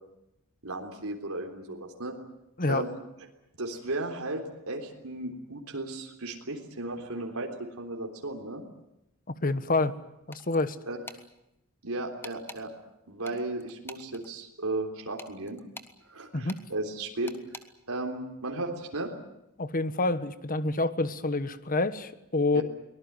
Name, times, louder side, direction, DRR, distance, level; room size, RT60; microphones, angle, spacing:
voice 1, 0.6-2.1 2.7-3.0 3.6-8.6 10.9-11.0 11.8-12.7 13.1-15.6 16.0-17.3 17.9-19.1 22.5-22.6, right 2 dB, 85° right, 2 dB, 3.6 m, -35 dB
voice 2, 9.4-10.0 10.3-10.8 16.3-16.6 19.6-22.6, left 2 dB, 40° left, 12 dB, 1.3 m, -27 dB
sound 1, 10.3-10.7 11.1-11.2 12.2-12.6 13.2-14.3 15.2-15.9 16.5-16.6 17.3-17.7, left 2 dB, 10° left, 1.4 m, -45 dB
23.5 x 19.5 x 9.6 m, 0.86 s
head